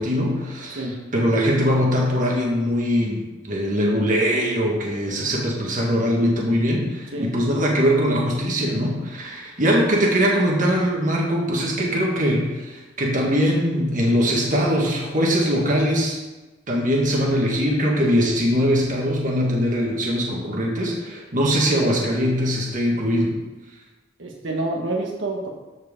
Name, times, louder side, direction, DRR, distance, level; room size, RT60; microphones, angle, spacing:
voice 1, 0.0-16.2 16.7-23.3, equal, 45° right, -1 dB, 1.6 m, -21 dB
voice 2, 24.2-25.5, right 2 dB, 85° right, 0 dB, 1.2 m, -27 dB
13.5 x 4.6 x 3.6 m, 1.1 s
head